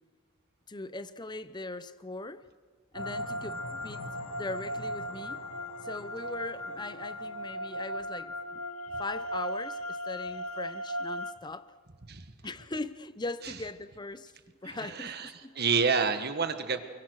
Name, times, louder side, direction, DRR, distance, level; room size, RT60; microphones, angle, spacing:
voice 1, 0.7-2.4 2.9-4.0 4.4-5.4 5.8-8.6 9.0-11.7 12.4-14.3 14.6-15.6, left 2 dB, 20° left, 0.7 m, -40 dB
sound 1, 2.9-11.3, equal, 75° left, 1.8 m, -37 dB
voice 2, 14.6-16.8, right 5 dB, 45° right, 1.6 m, -29 dB
29.0 x 22.5 x 6.5 m
head